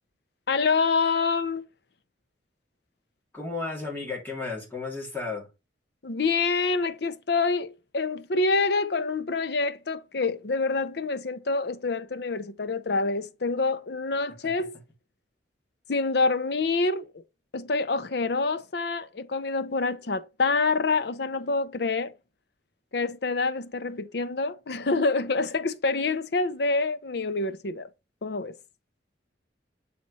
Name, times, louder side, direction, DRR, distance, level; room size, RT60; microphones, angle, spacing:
voice 1, 0.5-1.7 6.0-14.7 15.9-17.2 17.5-22.1 22.9-27.9 28.2-28.5, left 3 dB, 60° left, 0.7 m, -26 dB
voice 2, 3.3-5.5, left 3 dB, 10° left, 2.9 m, -33 dB
7.5 x 4.3 x 4.1 m
head